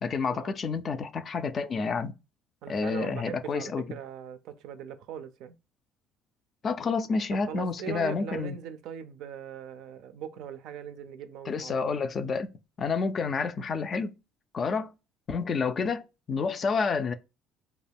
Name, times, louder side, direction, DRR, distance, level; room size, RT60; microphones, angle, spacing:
voice 1, 0.0-2.1 2.7-3.9 6.6-8.6 11.5-12.5 12.8-14.1 14.5-14.9 15.3-17.1, left 5 dB, 40° left, 0.3 m, -29 dB
voice 2, 2.6-5.5 7.4-11.9, right 8 dB, 70° right, 0.3 m, -40 dB
2.3 x 2.1 x 3.3 m
supercardioid pair, 85°, 0 cm